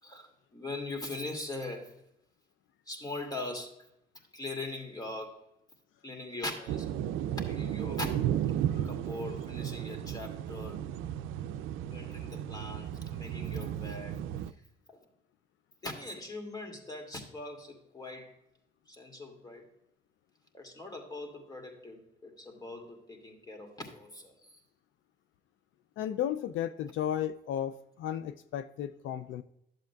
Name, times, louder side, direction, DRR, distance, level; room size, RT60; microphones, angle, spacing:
voice 1, 0.0-1.9 2.9-3.7 4.3-5.4 6.0-6.9 7.5-8.1 8.8-10.8 11.9-14.2 14.9-15.0 15.8-18.3 18.9-19.6 20.5-24.5, left 2 dB, 20° left, 4 dB, 2.4 m, -41 dB
sound 1, 6.7-14.5, right 10 dB, 90° right, 0.4 m, -34 dB
voice 2, 26.0-29.4, left 10 dB, 80° left, 12 dB, 0.4 m, -34 dB
11.5 x 7.6 x 2.3 m, 0.80 s
cardioid pair, 90°, 20 cm